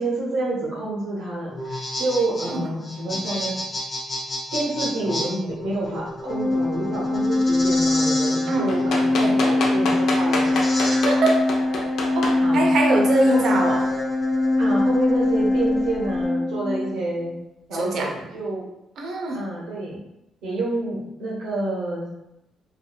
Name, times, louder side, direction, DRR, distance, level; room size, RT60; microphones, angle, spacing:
voice 1, 0.0-3.6 4.5-10.7 12.4-12.6 13.3-13.5 14.6-17.4 17.7-18.7 19.3-20.0 20.4-22.1, right 2 dB, 85° right, -5 dB, 1.0 m, -28 dB
sound 1, 1.5-16.3, left 1 dB, 35° left, 0.7 m, -33 dB
Organ, 6.2-17.0, left 2 dB, 10° left, 0.3 m, -22 dB
sound 2, 8.7-12.4 13.3-13.4, left 2 dB, 70° left, 0.5 m, -26 dB
voice 2, 10.9-11.4 12.1-13.9 17.7-18.1 19.0-19.4, right 2 dB, 65° right, 1 dB, 0.6 m, -23 dB
2.7 x 2.6 x 2.2 m, 0.89 s
cardioid pair, 90°, 0 cm